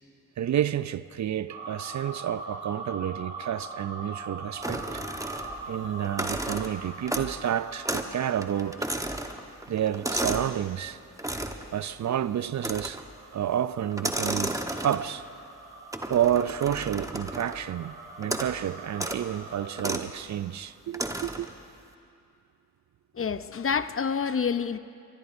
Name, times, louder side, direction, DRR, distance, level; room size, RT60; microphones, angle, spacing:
voice 1, 0.4-5.0 5.7-8.9 9.7-11.0 11.7-13.0 13.3-15.3 16.1-21.5, right 10 dB, 45° right, 0.5 m, -30 dB
sound 1, 1.5-10.1 11.2-19.9, right 3 dB, 80° right, 4.8 m, -43 dB
sound 2, 4.6-5.7 6.0-7.5 7.9-8.2 8.4-10.6 11.2-11.7 12.6-13.1 13.9-15.2 15.9-17.6 18.2-18.6 18.9-19.2 19.8-20.1 20.9-21.5, right 1 dB, 10° right, 1.3 m, -33 dB
voice 2, 23.1-24.8, left 6 dB, 35° left, 0.7 m, -28 dB
24.0 x 21.0 x 2.7 m
hypercardioid pair, 45°, 39 cm